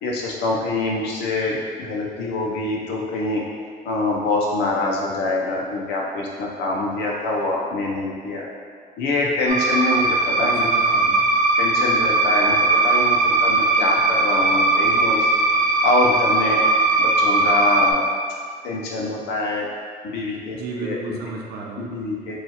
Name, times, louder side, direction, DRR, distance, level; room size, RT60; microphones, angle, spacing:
voice 1, 0.0-3.4 3.8-8.5 9.0-10.7 11.6-15.3 15.8-16.6 17.0-18.0 18.6-19.7 20.0-21.2 21.8-22.4, left 2 dB, 75° left, -3 dB, 0.6 m, -25 dB
sound 1, 9.5-17.9, right 2 dB, 45° right, 0.9 m, -19 dB
voice 2, 10.4-11.3 20.5-21.9, right 3 dB, 75° right, 0 dB, 0.6 m, -33 dB
6.4 x 2.4 x 2.8 m, 2.1 s
cardioid pair, 110°, 17 cm